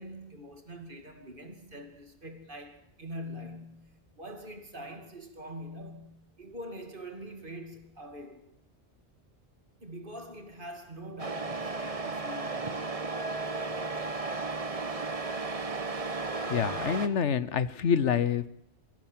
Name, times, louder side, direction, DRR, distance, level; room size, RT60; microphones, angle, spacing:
voice 1, 0.0-8.5 9.8-12.8, equal, 45° right, 2.7 m, -44 dB
Truck, 11.2-17.1, right 3 dB, 30° right, 1.2 m, -34 dB
voice 2, 16.4-18.5, left 7 dB, 80° left, 1.2 m, -27 dB
24.0 x 14.5 x 7.5 m
omnidirectional pair, 1.2 m